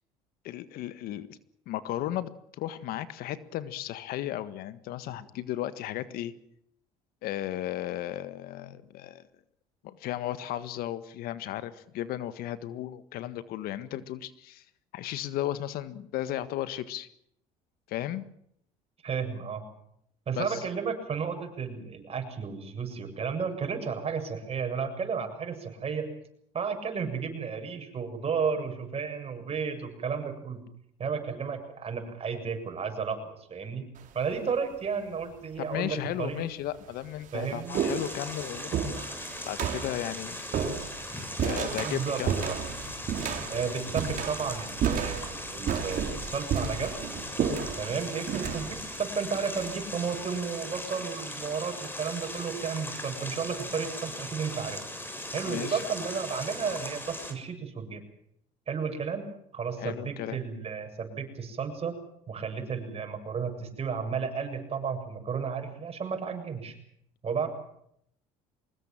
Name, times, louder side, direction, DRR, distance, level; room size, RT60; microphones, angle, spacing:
voice 1, 0.4-1.4 1.7-2.3 2.6-6.3 7.2-9.2 9.8-14.6 14.9-17.1 17.9-18.2 20.3-20.6 35.6-39.0 39.4-40.4 41.4-42.3 55.4-55.8 59.8-60.4, left 13 dB, 70° left, 13 dB, 1.7 m, -35 dB
voice 2, 19.0-19.6 20.3-26.1 26.5-30.6 31.0-33.8 34.1-36.4 37.3-37.8 41.7-42.6 43.5-47.0 47.8-54.8 55.3-58.0 58.7-59.3 59.5-62.0 62.3-66.7 67.2-67.5, right 6 dB, 40° right, 5 dB, 7.5 m, -33 dB
sound 1, 34.0-34.4 35.3-35.4 36.3-36.4 36.8-50.3, right 7 dB, 55° right, 4.3 m, -33 dB
sound 2, 37.7-57.3, left 1 dB, 15° left, 6.7 m, -39 dB
24.0 x 20.5 x 7.5 m, 0.72 s
supercardioid pair, 85°, 16 cm